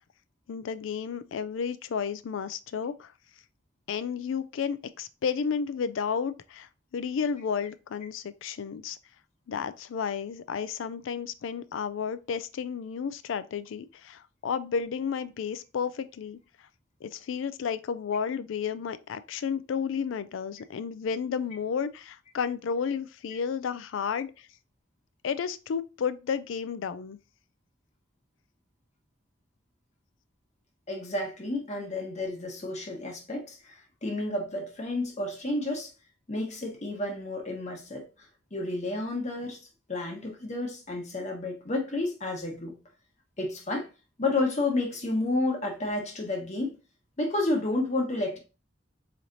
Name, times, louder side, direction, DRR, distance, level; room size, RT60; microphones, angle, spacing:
voice 1, 0.5-3.1 3.9-9.0 9.5-16.4 17.0-24.5 25.2-27.2, left 6 dB, 90° left, 0.4 m, -32 dB
voice 2, 30.9-35.9 36.3-38.0 38.5-39.6 39.9-42.8 43.4-43.9 44.2-46.8 47.2-48.4, left 2 dB, 40° left, 1.1 m, -31 dB
4.2 x 3.1 x 2.6 m
head